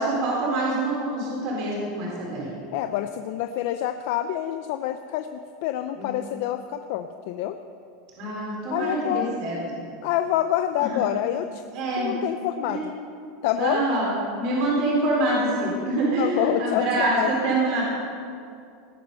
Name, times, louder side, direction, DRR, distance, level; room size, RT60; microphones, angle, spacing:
voice 1, 0.0-2.5 6.0-6.2 8.2-9.9 10.8-11.0 11.7-12.1 12.6-12.8 13.5-17.8, right 2 dB, 40° right, -4 dB, 4.1 m, -25 dB
voice 2, 2.7-7.6 8.7-9.3 10.0-11.6 12.0-12.9 13.4-13.9 16.2-17.3, left 12 dB, 50° left, 8 dB, 0.5 m, -27 dB
18.5 x 8.8 x 5.5 m, 2.4 s
supercardioid pair, 170°, 0 cm